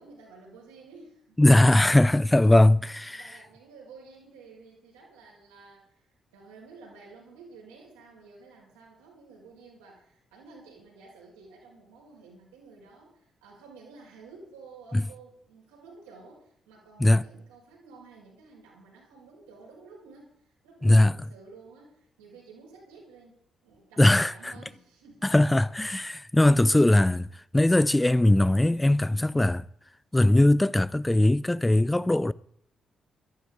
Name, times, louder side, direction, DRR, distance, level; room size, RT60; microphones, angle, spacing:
voice 1, 0.0-1.4 2.9-23.4 23.6-25.4 25.8-26.1, right 4 dB, 85° right, 5.6 m, -51 dB
voice 2, 1.4-3.2 14.9-15.0 17.0-17.2 20.8-21.1 24.0-24.3 25.2-27.3 27.5-29.6 30.1-32.3, left 1 dB, 15° left, 0.6 m, -20 dB
17.5 x 13.0 x 3.8 m
hypercardioid pair, 40°, 0 cm